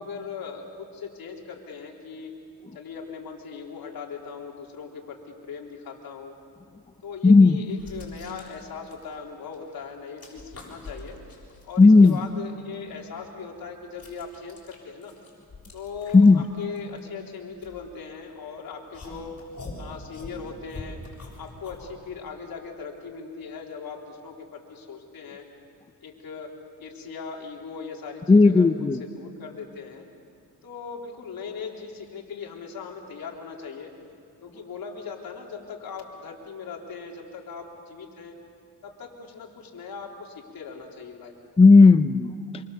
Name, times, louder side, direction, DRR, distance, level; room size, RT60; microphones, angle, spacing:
voice 1, 0.0-2.3 2.7-6.4 7.0-11.2 11.6-15.1 15.7-19.4 19.8-21.0 21.4-25.4 26.0-30.1 30.6-33.9 34.4-38.4 38.8-41.6, left 5 dB, 70° left, 0 dB, 3.6 m, -39 dB
voice 2, 7.2-7.6 11.8-12.2 16.1-16.4 28.3-29.0 41.6-42.6, left 3 dB, 15° left, 10 dB, 0.6 m, -14 dB
sound 1, 7.4-9.7 10.0-12.2 12.7-18.3 18.9-21.9, left 2 dB, 45° left, 7.4 m, -44 dB
26.5 x 24.5 x 7.0 m, 2.5 s
cardioid pair, 110°, 36 cm